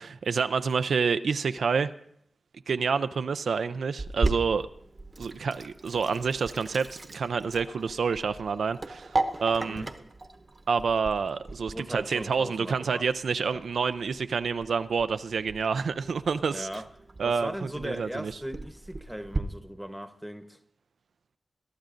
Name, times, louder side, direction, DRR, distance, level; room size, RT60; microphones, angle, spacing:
voice 1, 0.0-1.9 2.7-4.7 5.2-9.8 10.7-16.7 17.2-18.3, right 5 dB, 80° right, 0.4 m, -28 dB
Sink (filling or washing), 4.0-19.4, right 2 dB, 40° right, 0.9 m, -37 dB
voice 2, 11.7-13.1 13.5-13.6 16.5-16.9 17.2-20.6, equal, ahead, 1.0 m, -38 dB
22.0 x 11.5 x 2.6 m
cardioid pair, 60°, 0 cm